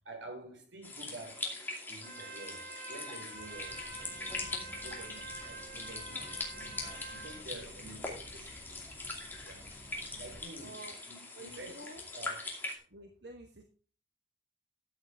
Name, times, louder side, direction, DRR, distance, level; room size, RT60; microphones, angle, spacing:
voice 1, 0.0-1.5 1.9-6.5 6.8-8.8 9.4-9.6 10.2-10.8 11.1-12.5, right 2 dB, 85° right, 4.6 m, -49 dB
sound 1, 0.8-12.7, left 2 dB, 10° left, 2.4 m, -42 dB
Trumpet, 2.0-7.4, right 3 dB, 50° right, 2.6 m, -47 dB
sound 2, 3.5-10.4, equal, 55° left, 2.6 m, -54 dB
voice 2, 10.6-11.0 11.3-12.0 12.9-13.6, right 2 dB, 65° right, 1.4 m, -49 dB
13.0 x 8.4 x 3.6 m
head